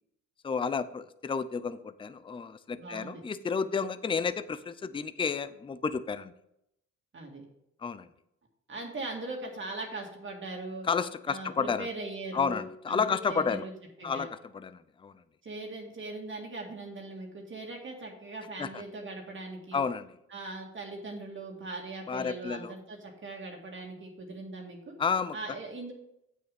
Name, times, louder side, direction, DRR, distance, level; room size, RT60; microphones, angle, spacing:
voice 1, 0.4-6.3 7.8-8.1 10.9-11.9 12.3-13.7 14.0-15.1 18.6-18.8 19.7-20.1 22.1-22.7 25.0-25.4, left 5 dB, 15° left, 14 dB, 0.5 m, -31 dB
voice 2, 2.7-3.2 7.1-7.4 8.7-10.9 11.3-13.7 14.0-14.3 15.4-19.8 20.3-25.0 25.3-25.9, right 2 dB, 40° right, 0 dB, 2.1 m, -40 dB
8.5 x 6.3 x 5.3 m, 0.79 s
cardioid pair, 90°, 30 cm